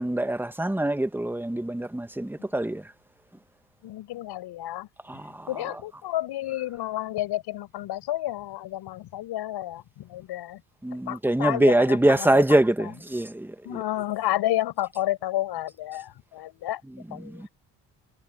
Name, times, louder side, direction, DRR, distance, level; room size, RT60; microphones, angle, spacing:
voice 1, 0.0-2.8 5.1-5.8 10.8-13.8 16.9-17.5, right 1 dB, 5° right, 1.5 m, -24 dB
voice 2, 3.8-4.9 5.5-10.6 11.1-12.4 13.6-16.8 17.1-17.5, left 14 dB, 75° left, 7.4 m, -30 dB
supercardioid pair, 70°, 40 cm